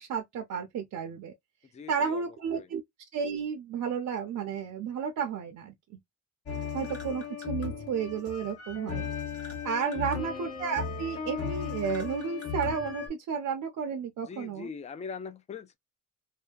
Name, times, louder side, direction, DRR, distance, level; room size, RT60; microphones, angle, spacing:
voice 1, 0.0-1.3 1.9-2.8 3.1-5.7 6.7-9.1 9.6-14.7, right 6 dB, 85° right, 0.6 m, -32 dB
voice 2, 1.7-2.3 2.5-2.7 9.9-10.1 14.3-15.8, left 6 dB, 25° left, 0.3 m, -41 dB
sound 1, 6.5-13.1, left 6 dB, 50° left, 1.0 m, -36 dB
2.7 x 2.2 x 2.3 m
cardioid pair, 110°, 30 cm